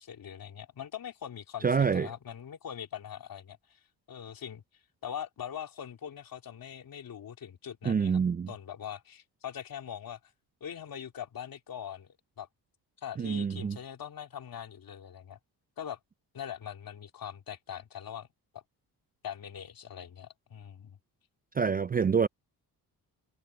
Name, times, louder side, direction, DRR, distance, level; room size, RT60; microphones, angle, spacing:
voice 1, 0.0-3.8 4.1-4.6 5.0-8.2 8.5-10.2 10.6-12.5 13.0-15.4 15.8-16.0 16.3-18.3 18.5-18.6 19.2-21.0, left 9 dB, 60° left, 2.9 m, -42 dB
voice 2, 1.6-2.1 7.9-8.5 13.2-13.8 21.6-22.3, right 6 dB, 25° right, 0.4 m, -26 dB
cardioid pair, 85°, 39 cm